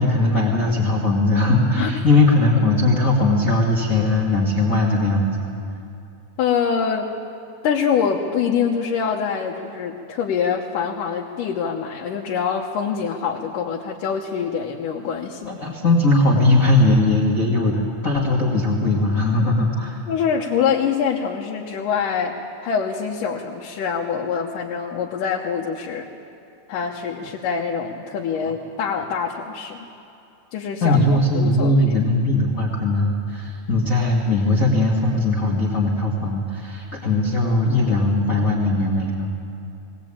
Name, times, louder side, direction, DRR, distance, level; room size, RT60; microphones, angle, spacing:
voice 1, 0.0-5.4 15.4-20.0 30.8-39.3, left 2 dB, 30° left, -3 dB, 1.8 m, -19 dB
voice 2, 6.4-7.1 7.6-15.5 20.1-26.1 26.7-29.9 30.5-31.0 31.3-31.8, left 7 dB, 85° left, -1 dB, 2.7 m, -24 dB
20.0 x 18.5 x 8.7 m, 2.6 s
omnidirectional pair, 3.7 m